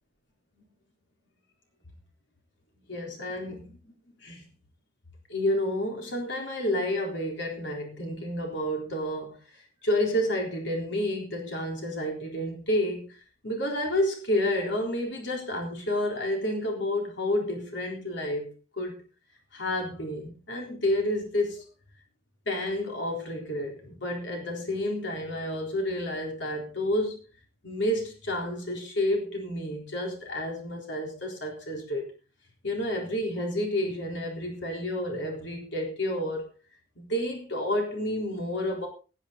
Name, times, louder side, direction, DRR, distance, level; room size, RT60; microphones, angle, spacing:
voice 1, 2.9-3.8 4.2-4.5 5.3-13.2 13.4-19.0 19.5-21.7 22.5-27.2 27.6-32.1 32.6-36.4 37.0-38.9, left 1 dB, 60° left, 1 dB, 3.9 m, -30 dB
19.0 x 8.6 x 4.0 m, 0.33 s
head